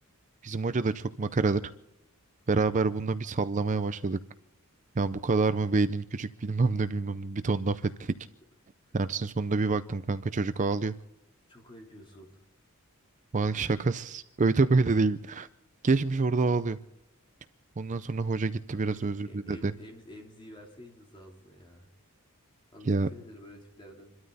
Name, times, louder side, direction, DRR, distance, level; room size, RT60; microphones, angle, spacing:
voice 1, 0.4-1.6 2.5-4.2 5.0-8.1 8.9-10.9 13.3-15.5 15.8-16.8 17.8-19.7 22.8-23.1, right 3 dB, 35° right, 12 dB, 0.5 m, -27 dB
voice 2, 11.5-12.4 18.7-21.9 22.7-24.2, equal, 25° left, 0 dB, 3.5 m, -50 dB
27.0 x 13.0 x 4.1 m, 0.88 s
head